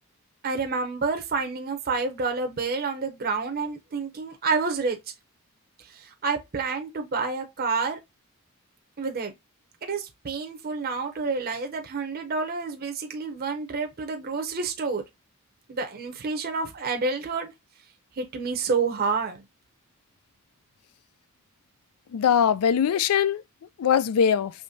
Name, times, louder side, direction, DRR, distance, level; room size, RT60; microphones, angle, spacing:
voice 1, 0.4-5.0 6.0-8.0 9.0-9.3 9.8-15.0 15.7-17.5 18.2-19.4, right 4 dB, 45° right, 0.7 m, -29 dB
voice 2, 22.1-23.4 23.8-24.5, left 8 dB, 75° left, 0.4 m, -21 dB
5.0 x 3.1 x 2.6 m
head